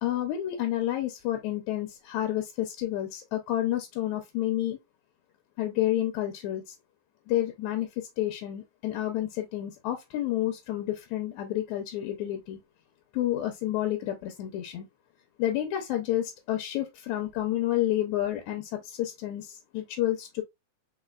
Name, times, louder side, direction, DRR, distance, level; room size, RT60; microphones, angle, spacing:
voice 1, 0.0-4.8 5.6-6.7 7.3-12.6 13.1-14.9 15.4-20.4, left 13 dB, 75° left, 1.9 m, -30 dB
4.6 x 4.1 x 2.3 m
omnidirectional pair, 3.7 m